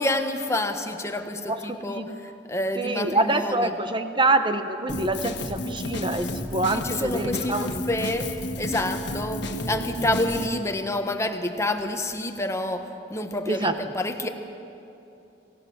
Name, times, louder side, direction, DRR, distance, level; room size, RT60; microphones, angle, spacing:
voice 1, 0.0-3.7 6.7-8.3 8.6-14.3, left 1 dB, 15° left, 6 dB, 1.3 m, -28 dB
voice 2, 2.8-7.8 13.5-13.7, right 2 dB, 25° right, 8 dB, 1.1 m, -25 dB
Drum kit, 4.9-10.5, left 1 dB, 65° left, 1.6 m, -32 dB
26.5 x 18.0 x 7.4 m, 2.8 s
head